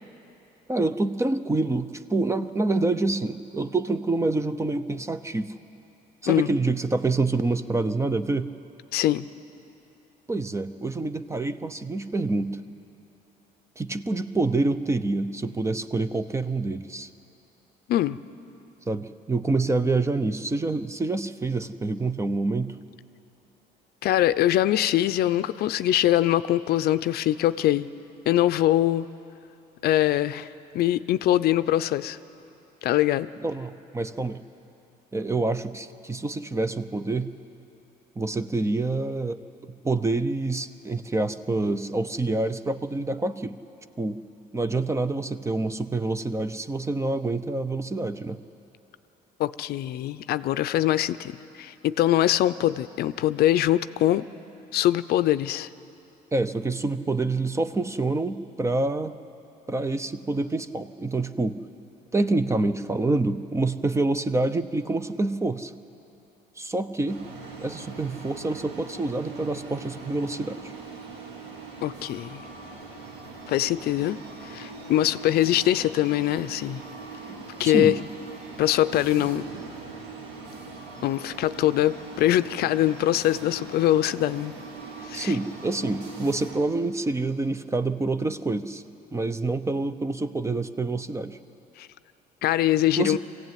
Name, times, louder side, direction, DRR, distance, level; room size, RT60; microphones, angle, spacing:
voice 1, 0.7-5.5 6.2-8.5 10.3-12.6 13.8-17.1 18.9-22.8 33.4-34.4 35.1-37.3 38.2-39.4 39.8-43.6 44.0-44.2 44.5-48.4 56.3-59.1 59.7-61.6 62.1-65.7 66.6-67.2 67.6-70.7 77.3-78.0 85.1-88.8 89.1-91.4 93.0-93.2, right 2 dB, 15° right, 12 dB, 0.7 m, -27 dB
voice 2, 8.9-9.2 17.9-18.2 24.0-27.9 28.3-29.1 29.8-30.5 30.7-32.2 32.8-33.3 49.4-54.3 54.7-55.7 71.8-72.4 73.5-74.2 74.5-76.8 77.6-78.0 78.6-79.5 81.0-84.5 85.1-85.4 91.8-91.9 92.4-93.2, left 13 dB, 70° left, 13 dB, 0.6 m, -23 dB
sound 1, 67.1-86.6, right 4 dB, 85° right, 2.7 m, -41 dB
23.0 x 16.0 x 9.3 m, 2.9 s
cardioid pair, 110°, 17 cm